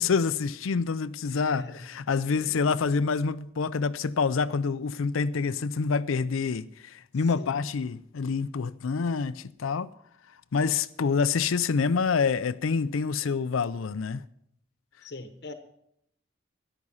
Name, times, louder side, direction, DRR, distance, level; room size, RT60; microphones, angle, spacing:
voice 1, 0.0-9.9 10.5-14.2, left 5 dB, 80° left, 0.5 m, -27 dB
voice 2, 1.3-1.9 2.4-2.6 7.2-7.5 15.0-15.5, left 2 dB, 55° left, 1.0 m, -42 dB
13.5 x 11.0 x 5.5 m
head